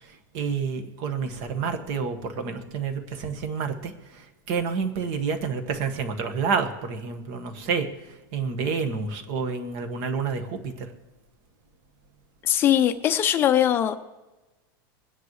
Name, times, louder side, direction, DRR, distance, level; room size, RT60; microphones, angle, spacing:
voice 1, 0.0-10.9, right 5 dB, 35° right, 7 dB, 1.6 m, -29 dB
voice 2, 12.4-13.9, left 11 dB, 20° left, 9 dB, 0.7 m, -21 dB
25.0 x 10.0 x 3.2 m, 1.1 s
supercardioid pair, 175°, 12 cm